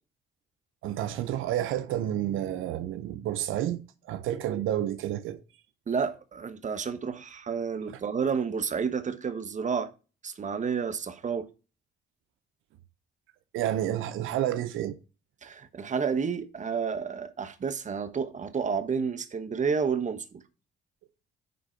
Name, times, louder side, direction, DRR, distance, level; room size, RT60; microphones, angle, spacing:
voice 1, 0.8-5.4 13.5-15.0, right 12 dB, 85° right, 0.6 m, -30 dB
voice 2, 5.9-9.9 10.2-11.5 15.4-20.4, right 6 dB, 40° right, 1.1 m, -30 dB
9.5 x 3.6 x 5.7 m
cardioid pair, 90°, 20 cm